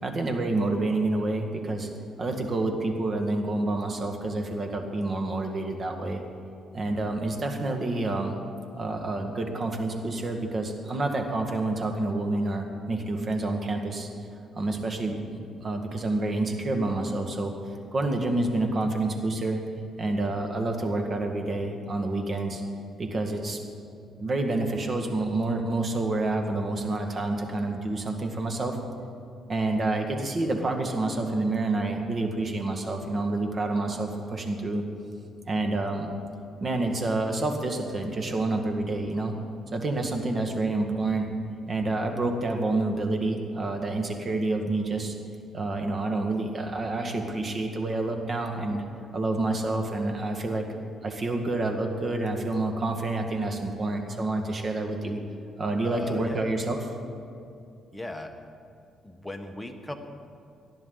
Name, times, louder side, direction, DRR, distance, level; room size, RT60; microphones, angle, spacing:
voice 1, 0.0-1.9 2.2-6.2 6.7-8.4 8.8-14.1 14.5-17.5 17.9-19.6 20.0-22.6 23.0-23.6 24.2-28.8 29.5-34.8 35.5-36.1 36.6-39.3 39.7-41.3 41.7-45.2 45.5-48.8 49.1-50.7 51.0-55.2 55.6-56.8, right 2 dB, 40° right, 4 dB, 1.9 m, -28 dB
voice 2, 55.8-56.6 57.9-58.4 59.0-59.9, left 1 dB, 5° left, 4 dB, 1.3 m, -38 dB
19.5 x 12.0 x 4.0 m, 2.5 s
cardioid pair, 90°, 0 cm